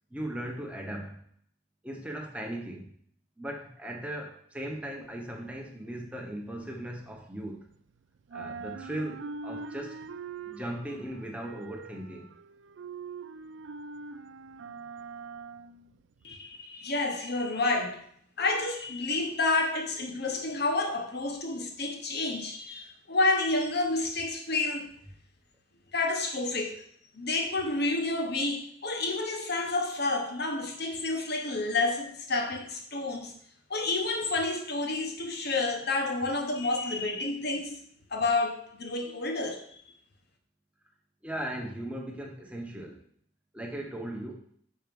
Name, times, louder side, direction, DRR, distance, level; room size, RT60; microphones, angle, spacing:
voice 1, 0.1-1.2 1.8-2.9 3.4-7.6 8.3-10.0 10.4-12.3 41.2-43.0 43.5-44.4, right 1 dB, 5° right, 1 dB, 1.0 m, -38 dB
sound 1, 5.0-7.9 8.2-16.3, right 4 dB, 65° right, 0.4 m, -43 dB
voice 2, 16.2-18.0 18.4-24.8 25.9-26.8 27.1-33.3 33.7-37.8 38.1-39.6, left 2 dB, 55° left, 3 dB, 1.1 m, -29 dB
5.8 x 4.6 x 5.3 m, 0.62 s
head